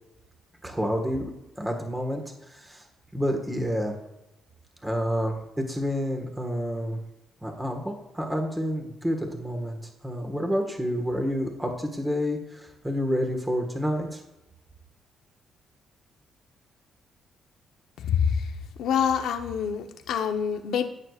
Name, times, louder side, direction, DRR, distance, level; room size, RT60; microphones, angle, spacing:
voice 1, 0.6-1.3 1.6-2.2 2.5-2.8 3.1-4.0 4.8-7.0 7.4-14.2, equal, 10° right, 3 dB, 1.6 m, -29 dB
voice 2, 18.8-20.8, left 8 dB, 80° left, 6 dB, 0.9 m, -26 dB
17.5 x 6.6 x 2.5 m, 0.92 s
cardioid pair, 90°, 0 cm